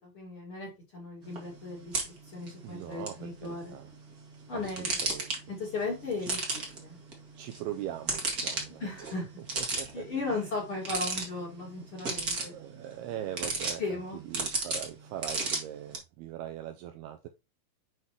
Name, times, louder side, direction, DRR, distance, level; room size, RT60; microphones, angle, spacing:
voice 1, 0.0-3.8 4.5-5.1 5.5-6.4 6.8-7.0 8.8-9.3 9.9-12.6 13.8-14.2, left 3 dB, 40° left, -2 dB, 2.1 m, -36 dB
sound 1, 1.2-16.0, right 3 dB, 45° right, 1.1 m, -37 dB
voice 2, 2.6-3.9 4.5-5.3 6.2-6.3 7.4-10.5 12.4-17.3, right 12 dB, 85° right, 6 dB, 2.3 m, -41 dB
8.0 x 5.6 x 3.0 m, 0.25 s
omnidirectional pair, 5.1 m